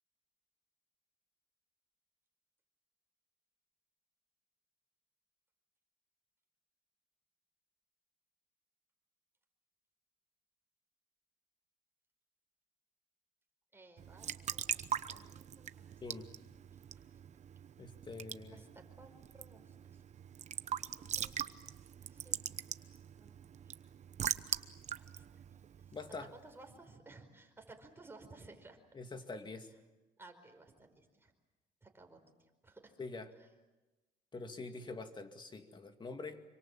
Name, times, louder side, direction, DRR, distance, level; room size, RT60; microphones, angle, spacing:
voice 1, 13.7-15.9 16.7-17.2 18.5-20.0 20.9-21.4 22.1-22.4 22.9-23.4 23.6-23.7 24.9-25.4 25.8-26.0 26.3-28.8 30.2-31.3 31.8-32.9 33.4-33.5, right 2 dB, 15° right, 4 dB, 4.9 m, -58 dB
Raindrop / Drip / Trickle dribble, 14.0-26.4, right 8 dB, 45° right, 1.0 m, -42 dB
voice 2, 17.8-18.6 25.9-26.3 28.9-29.7 33.0-33.3 34.3-36.4, left 3 dB, 25° left, 7 dB, 2.3 m, -45 dB
26.5 x 25.0 x 7.5 m, 1.1 s
cardioid pair, 110°, 17 cm